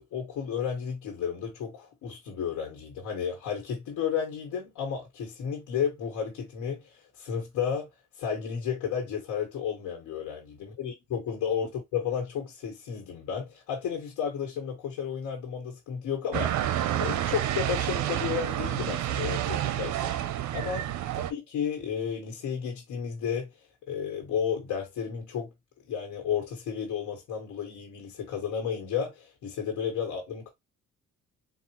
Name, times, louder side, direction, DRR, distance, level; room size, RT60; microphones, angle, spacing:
voice 1, 0.0-7.9 8.2-20.1 20.5-20.9 21.1-23.5 23.8-25.5 25.8-30.5, left 7 dB, 80° left, 1.4 m, -32 dB
sound 1, 16.3-21.3, right 12 dB, 70° right, 0.6 m, -29 dB
4.1 x 2.4 x 2.9 m
cardioid pair, 90°, 30 cm